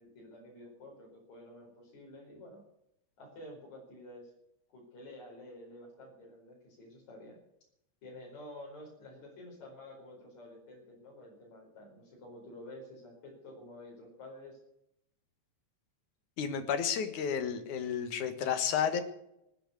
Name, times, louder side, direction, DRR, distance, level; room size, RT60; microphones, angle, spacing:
voice 1, 0.0-2.6 3.2-4.3 4.7-7.4 8.0-14.6, left 1 dB, 70° left, -2 dB, 6.0 m, -50 dB
voice 2, 16.4-19.0, left 7 dB, 85° left, 9 dB, 3.0 m, -31 dB
19.5 x 9.0 x 8.2 m, 0.81 s
omnidirectional pair, 3.4 m